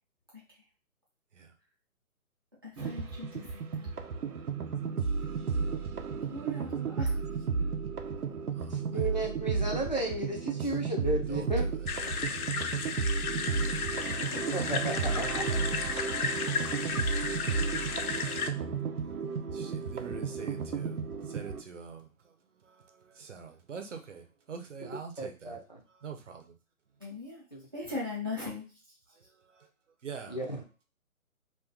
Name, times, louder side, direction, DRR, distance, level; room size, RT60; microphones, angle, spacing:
voice 1, 2.6-3.9 4.2-4.8 6.3-7.2 14.3-14.4 27.0-27.4 27.7-28.7, left 2 dB, 15° right, -7 dB, 0.6 m, -39 dB
sound 1, 2.8-21.6, right 5 dB, 85° right, 0.7 m, -33 dB
voice 2, 8.7-11.6 14.5-15.5 24.8-25.8 27.5-27.7 30.3-30.6, right 2 dB, 35° left, 0 dB, 0.4 m, -34 dB
voice 3, 11.3-11.9 18.2-18.5 19.5-21.0 21.2-22.3 22.6-25.6 26.0-26.5 29.5-29.7 30.0-30.4, right 6 dB, 55° right, 5 dB, 0.8 m, -45 dB
sound 2, 11.9-18.5, left 5 dB, 80° left, 0.6 m, -34 dB
2.5 x 2.4 x 3.6 m, 0.32 s
hypercardioid pair, 160°, 43 cm